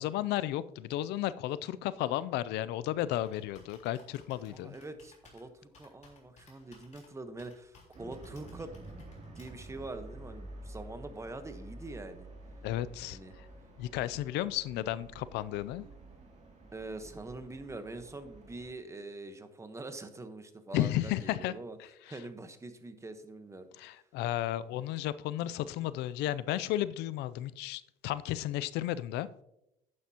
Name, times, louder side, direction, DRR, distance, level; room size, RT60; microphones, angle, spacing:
voice 1, 0.0-4.8 12.6-13.2 13.8-15.9 20.7-21.5 22.1-22.2 23.8-29.3, left 13 dB, 85° left, 16 dB, 0.4 m, -33 dB
Computer keyboard, 2.5-9.8, left 4 dB, 45° left, 3.7 m, -61 dB
voice 2, 4.5-8.9 9.3-12.3 13.1-13.3 16.7-21.8 22.1-23.9, right 2 dB, 15° right, 9 dB, 1.1 m, -44 dB
sound 1, 7.9-18.7, right 2 dB, 40° right, 2.4 m, -50 dB
11.0 x 9.5 x 2.9 m, 0.85 s
cardioid pair, 110°, 17 cm